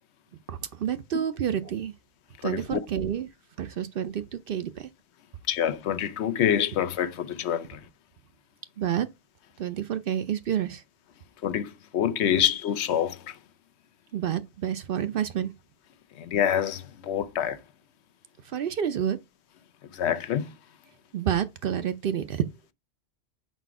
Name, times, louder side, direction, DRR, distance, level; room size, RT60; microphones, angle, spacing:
voice 1, 0.5-1.9 2.4-3.3 3.6-4.9 8.8-9.1 9.6-10.8 14.1-15.5 18.5-19.2 21.1-22.5, right 9 dB, 65° right, 0.7 m, -29 dB
voice 2, 2.4-2.8 5.5-7.8 11.4-13.4 16.2-17.6 19.9-20.5, left 9 dB, 85° left, 0.9 m, -26 dB
4.9 x 4.1 x 4.7 m
omnidirectional pair, 1.1 m